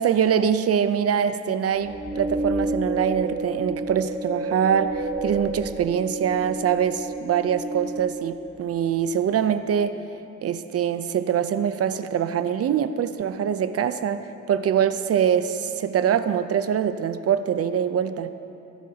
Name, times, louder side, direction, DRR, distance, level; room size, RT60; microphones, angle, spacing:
voice 1, 0.0-10.0 10.4-18.3, right 8 dB, 50° right, 11 dB, 0.6 m, -24 dB
sound 1, 1.7-9.1, right 2 dB, 25° right, 2.9 m, -31 dB
22.5 x 11.5 x 2.9 m, 2.9 s
cardioid pair, 90°, 30 cm